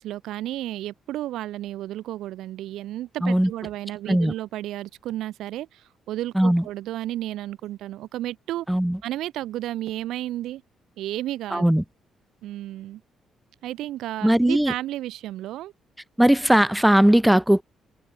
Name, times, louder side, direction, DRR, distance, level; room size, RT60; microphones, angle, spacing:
voice 1, 0.0-8.7 9.0-10.6 11.0-11.6 12.4-13.0 13.6-15.7, right 14 dB, 85° right, 4.6 m, -32 dB
voice 2, 8.7-9.0 11.5-11.8 14.2-14.7 16.2-17.6, right 1 dB, 5° right, 2.1 m, -18 dB
cardioid pair, 90°, 0 cm